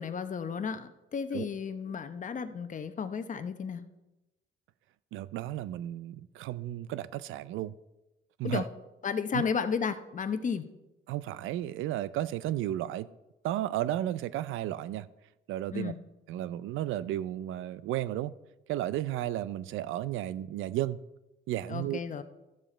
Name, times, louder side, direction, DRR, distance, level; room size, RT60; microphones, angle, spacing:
voice 1, 0.0-3.8 8.4-8.7 9.0-10.7 15.7-16.0 21.7-22.2, left 6 dB, 40° left, 10 dB, 0.9 m, -33 dB
voice 2, 5.1-7.7 8.4-8.7 9.3-9.4 11.1-13.1 13.4-15.1 15.5-15.9 16.3-18.3 18.7-21.0 21.5-22.0, right 13 dB, 85° right, 18 dB, 0.5 m, -33 dB
13.0 x 7.1 x 4.4 m, 1.0 s
cardioid pair, 90°, 20 cm